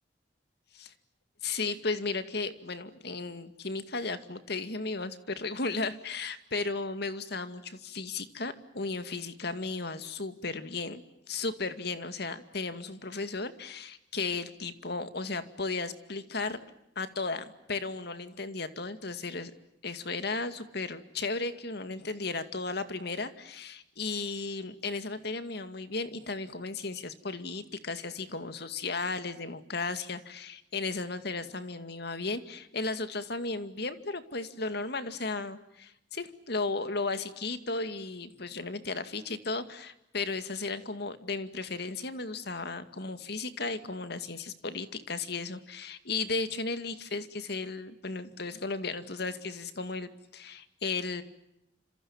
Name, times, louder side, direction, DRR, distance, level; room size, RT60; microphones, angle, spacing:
voice 1, 1.4-11.0 11.3-16.6 17.0-19.5 19.8-51.2, left 3 dB, 60° left, 10 dB, 2.3 m, -35 dB
30.0 x 27.0 x 7.3 m, 0.83 s
head